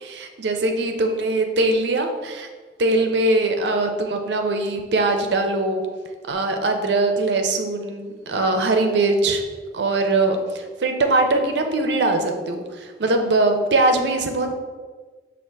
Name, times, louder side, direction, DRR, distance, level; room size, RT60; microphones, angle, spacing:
voice 1, 0.0-2.5 2.8-5.9 6.3-9.4 9.7-14.5, right 2 dB, 70° right, 5 dB, 0.5 m, -21 dB
6.0 x 2.5 x 3.3 m, 1.4 s
head